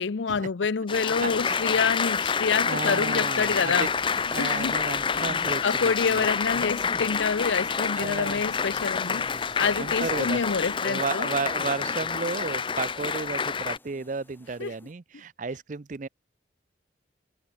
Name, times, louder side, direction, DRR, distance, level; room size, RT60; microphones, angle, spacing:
voice 1, 0.0-3.9 4.4-4.7 5.1-5.3 5.6-9.3 9.6-11.3 14.6-14.7, left 5 dB, 75° left, 0.6 m, -27 dB
Applause, 0.9-13.8, left 6 dB, 25° left, 0.5 m, -28 dB
sound 1, 2.1-14.9, left 2 dB, 10° left, 3.7 m, -56 dB
voice 2, 2.6-3.9 4.3-6.3 8.0-8.4 9.3-9.4 9.8-10.4 10.8-16.1, right 4 dB, 40° right, 0.5 m, -33 dB
sound 2, 3.4-10.8, right 4 dB, 80° right, 2.8 m, -51 dB
head